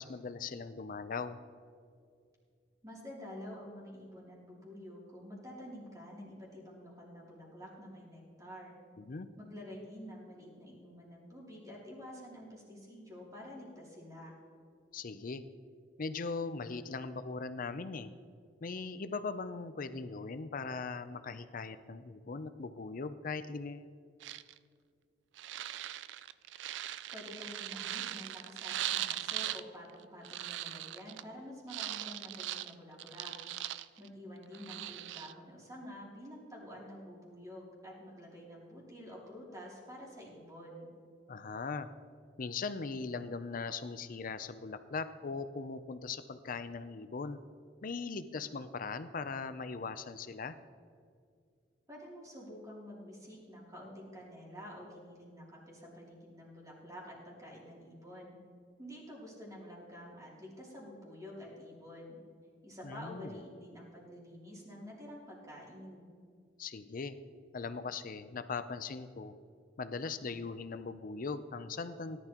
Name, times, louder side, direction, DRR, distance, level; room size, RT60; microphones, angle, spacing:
voice 1, 0.0-1.4 9.0-9.3 14.9-15.4 16.0-18.1 18.6-23.9 41.3-41.9 42.4-47.4 47.8-50.6 62.8-63.4 66.6-67.1 67.5-69.4 69.8-72.2, left 4 dB, 50° left, 12 dB, 0.5 m, -40 dB
voice 2, 2.8-8.7 9.4-14.4 27.1-33.3 34.0-40.9 51.9-58.4 58.8-62.2 62.6-66.1, equal, 20° right, -5 dB, 3.0 m, -49 dB
sound 1, 24.2-24.6 25.4-29.6 29.9-31.2 31.7-34.1 34.4-35.3, right 13 dB, 75° right, 0.3 m, -40 dB
17.5 x 11.0 x 3.0 m, 2.2 s
head